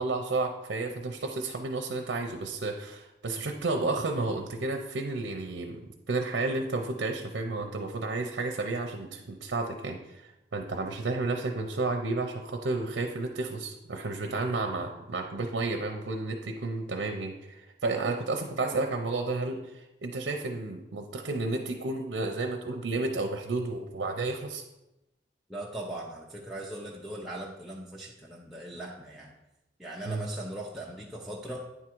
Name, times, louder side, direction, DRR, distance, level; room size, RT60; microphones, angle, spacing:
voice 1, 0.0-5.8 6.1-24.6 30.0-30.3, right 3 dB, 70° right, 3 dB, 0.6 m, -32 dB
voice 2, 25.5-29.3 29.8-31.6, right 1 dB, ahead, -5 dB, 0.6 m, -39 dB
9.3 x 3.6 x 4.5 m, 0.94 s
head